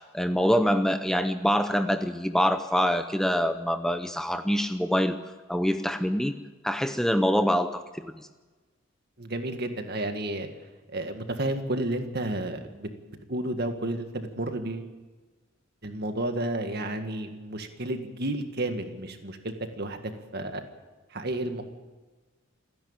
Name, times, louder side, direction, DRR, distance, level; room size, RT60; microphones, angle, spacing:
voice 1, 0.0-5.2 5.5-6.3 6.6-8.1, equal, 5° left, 8 dB, 0.7 m, -25 dB
voice 2, 9.2-10.5 10.9-14.9 15.8-20.6 21.1-21.6, right 1 dB, 50° right, 6 dB, 1.9 m, -32 dB
29.0 x 10.5 x 8.9 m, 1.3 s
head